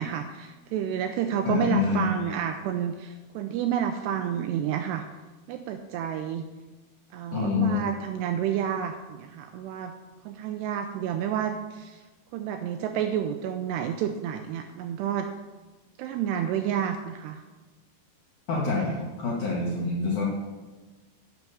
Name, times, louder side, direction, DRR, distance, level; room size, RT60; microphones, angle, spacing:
voice 1, 0.0-5.1 5.5-6.4 7.1-9.9 10.3-12.0 12.3-15.3 16.0-17.4, right 9 dB, 90° right, 7 dB, 2.4 m, -30 dB
voice 2, 1.4-2.1 7.3-7.8 18.5-20.3, left 4 dB, 70° left, -3 dB, 1.9 m, -26 dB
10.5 x 6.6 x 6.9 m, 1.2 s
omnidirectional pair, 5.4 m